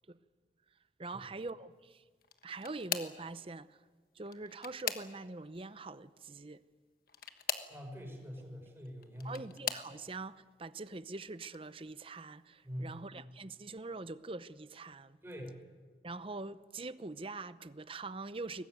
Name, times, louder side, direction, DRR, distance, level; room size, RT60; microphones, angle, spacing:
voice 1, 1.0-2.0 2.4-3.8 4.1-6.6 9.2-15.2 16.0-18.6, right 3 dB, 30° right, 0.7 m, -44 dB
sound 1, 2.2-3.3 4.2-5.5 7.1-7.8 8.8-9.9 10.7-11.0 11.4-11.6 12.9-13.0, left 8 dB, 55° left, 1.4 m, -40 dB
voice 2, 7.7-9.5 12.6-13.0 15.2-15.6, equal, 15° right, 5.5 m, -44 dB
23.0 x 19.5 x 9.4 m
head